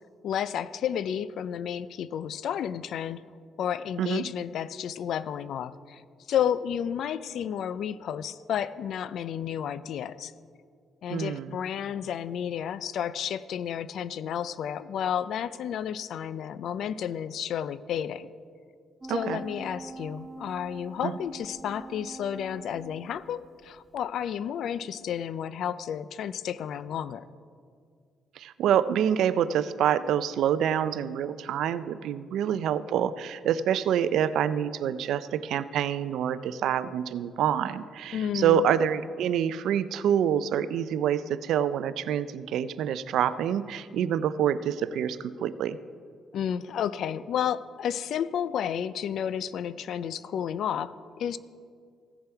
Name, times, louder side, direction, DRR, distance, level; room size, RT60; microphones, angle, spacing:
voice 1, 0.2-3.2 3.6-6.0 6.3-10.3 11.0-18.3 19.1-27.3 38.1-38.6 46.3-51.4, left 9 dB, 70° left, 16 dB, 0.4 m, -31 dB
voice 2, 11.1-11.5 19.1-19.4 21.0-21.1 28.4-45.8, right 9 dB, 80° right, 15 dB, 0.4 m, -27 dB
sound 1, 19.0-23.6 24.0-24.1, right 3 dB, 30° right, 1.1 m, -44 dB
16.0 x 6.9 x 4.5 m, 2.2 s
cardioid pair, 90°, 0 cm